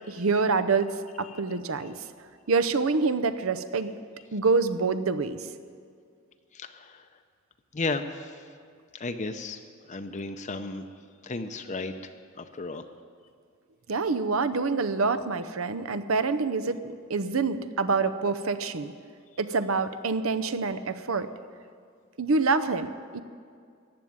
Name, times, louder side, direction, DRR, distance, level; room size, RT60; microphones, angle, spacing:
voice 1, 0.1-2.0 2.5-3.9 4.3-5.4 13.9-16.8 17.1-18.9 19.4-21.3 22.2-23.2, right 4 dB, 80° right, 12 dB, 0.7 m, -26 dB
voice 2, 6.5-7.0 7.7-8.4 8.9-9.6 9.9-10.9 11.2-12.1 12.4-12.8, left 3 dB, 35° left, 7 dB, 0.6 m, -34 dB
14.5 x 8.8 x 9.5 m, 2.2 s
head